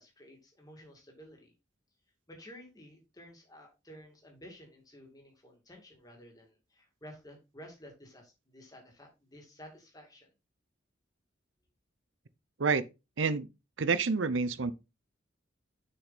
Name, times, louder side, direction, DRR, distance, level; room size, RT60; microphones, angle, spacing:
voice 1, 0.0-1.5 2.3-10.3, equal, 20° left, 2.5 m, -53 dB
voice 2, 13.2-13.5 13.8-14.7, right 4 dB, 80° right, 0.7 m, -28 dB
6.9 x 5.9 x 4.2 m
head